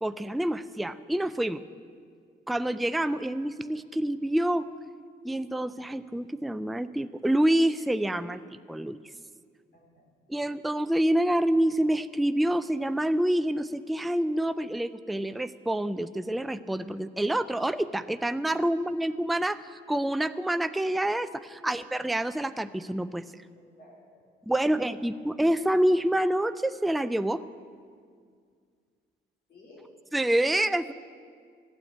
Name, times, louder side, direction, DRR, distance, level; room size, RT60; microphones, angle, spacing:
voice 1, 0.0-1.6 2.5-4.7 5.2-9.0 10.3-19.6 19.9-23.2 24.5-27.4 30.1-30.9, right 1 dB, ahead, 12 dB, 0.4 m, -27 dB
voice 2, 9.7-10.1 21.6-21.7 23.5-24.2 24.7-25.1 29.5-29.9, left 2 dB, 55° left, -2 dB, 4.6 m, -53 dB
15.0 x 9.0 x 8.5 m, 2.1 s
cardioid pair, 90°, 20 cm